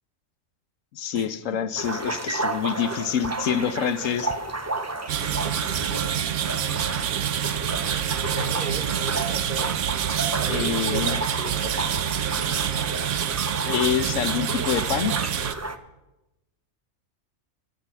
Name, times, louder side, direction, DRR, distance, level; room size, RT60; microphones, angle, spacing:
voice 1, 0.9-4.3 10.5-11.2 13.6-15.1, left 8 dB, 75° left, 12 dB, 1.1 m, -26 dB
sound 1, 1.8-15.8, right 2 dB, 20° right, 0.5 m, -32 dB
sound 2, 5.1-15.5, right 10 dB, 70° right, 1.0 m, -27 dB
voice 2, 5.4-6.4 7.7-9.8 10.3-11.8, right 4 dB, 40° right, 7 dB, 1.1 m, -35 dB
24.5 x 8.7 x 5.8 m, 1.0 s
omnidirectional pair, 1.4 m